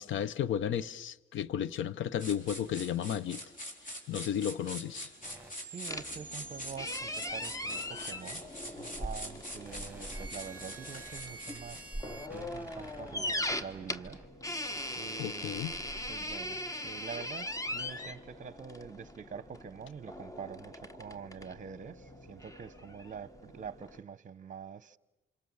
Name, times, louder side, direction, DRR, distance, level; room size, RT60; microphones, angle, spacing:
voice 1, 0.0-3.4 4.1-5.1 15.2-15.8, left 9 dB, 75° left, 0.9 m, -33 dB
sound 1, 2.2-11.9, equal, 40° left, 4.8 m, -44 dB
sound 2, 5.2-6.7 8.4-14.3, right 3 dB, 10° right, 2.3 m, -50 dB
voice 2, 5.6-8.4 9.0-14.2 14.9-15.6 16.1-25.0, right 7 dB, 40° right, 0.9 m, -46 dB
sound 3, 5.9-24.0, left 1 dB, 15° left, 1.3 m, -40 dB
28.5 x 26.5 x 7.2 m
cardioid pair, 90°, 20 cm